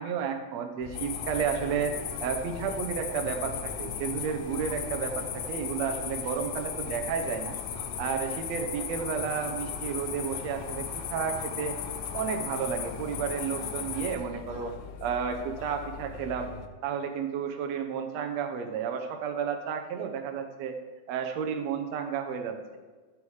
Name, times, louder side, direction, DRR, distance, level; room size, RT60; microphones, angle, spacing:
voice 1, 0.0-7.6 8.0-11.7 12.1-14.7 15.0-16.5 16.8-20.8 21.1-22.8, right 7 dB, 70° right, 6 dB, 2.0 m, -32 dB
sound 1, 0.8-16.7, left 6 dB, 85° left, 2.1 m, -43 dB
sound 2, 0.9-14.2, left 8 dB, 65° left, 1.8 m, -37 dB
12.0 x 6.9 x 4.8 m, 1.4 s
omnidirectional pair, 3.5 m